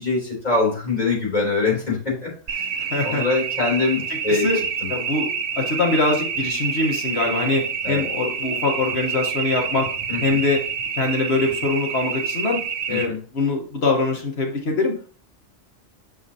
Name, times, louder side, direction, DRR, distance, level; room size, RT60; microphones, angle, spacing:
voice 1, 0.0-2.7 3.0-4.5 7.8-8.0 10.1-10.2 12.9-13.2, left 3 dB, 35° left, -4 dB, 3.5 m, -23 dB
sound 1, 2.5-13.1, right 7 dB, 85° right, 1.0 m, -28 dB
voice 2, 2.8-3.2 4.3-4.6 4.9-5.3 5.6-9.9 10.2-10.6 10.9-12.6 12.9-15.1, left 3 dB, 65° left, 1 dB, 1.5 m, -23 dB
6.3 x 5.8 x 2.8 m, 0.41 s
omnidirectional pair, 1.2 m